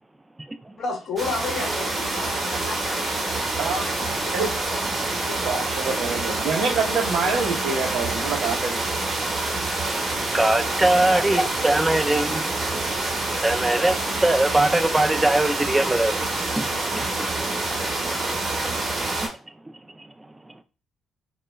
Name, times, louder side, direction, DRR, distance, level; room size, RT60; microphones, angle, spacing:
voice 1, 0.8-3.6 4.0-4.8 5.1-5.7 10.6-11.5, left 4 dB, 60° left, 0.8 m, -34 dB
sound 1, 1.2-19.3, right 2 dB, 40° right, 0.9 m, -27 dB
voice 2, 5.4-8.8, right 4 dB, 75° right, 0.7 m, -26 dB
voice 3, 10.3-12.5 13.4-16.3 16.6-16.7 16.9-17.0 20.0-20.1, right 1 dB, 15° right, 0.4 m, -21 dB
2.2 x 2.1 x 3.1 m
supercardioid pair, 60°, 0 cm